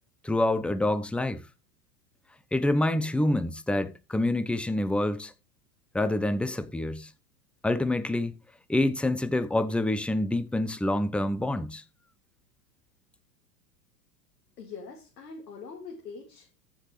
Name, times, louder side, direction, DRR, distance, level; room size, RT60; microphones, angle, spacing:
voice 1, 0.2-1.4 2.5-5.3 5.9-7.1 7.6-8.3 8.7-11.8, left 1 dB, ahead, 0.7 m, -27 dB
voice 2, 14.6-16.6, left 5 dB, 80° left, 2.5 m, -43 dB
14.5 x 6.3 x 3.2 m
hypercardioid pair, 95°, 48 cm